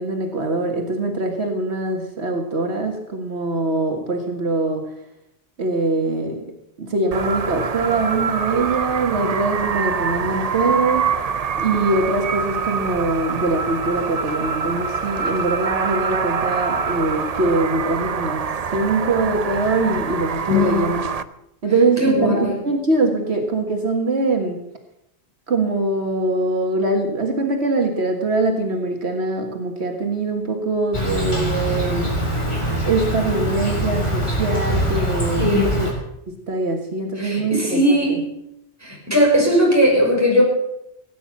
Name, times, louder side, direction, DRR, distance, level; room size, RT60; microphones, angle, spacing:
voice 1, 0.0-4.9 5.6-11.2 11.6-18.4 18.7-21.0 21.6-24.6 25.5-32.1 32.8-35.9 36.3-38.2, right 2 dB, 75° right, 3 dB, 2.0 m, -23 dB
sound 1, 7.1-21.2, right 6 dB, 40° right, 0.7 m, -25 dB
voice 2, 20.5-20.9 22.0-22.5 35.4-35.8 37.2-38.3 38.8-40.4, equal, 15° right, -3 dB, 5.8 m, -18 dB
Insect, 30.9-35.9, equal, 25° left, 3.7 m, -23 dB
17.5 x 9.6 x 7.2 m, 0.82 s
omnidirectional pair, 1.1 m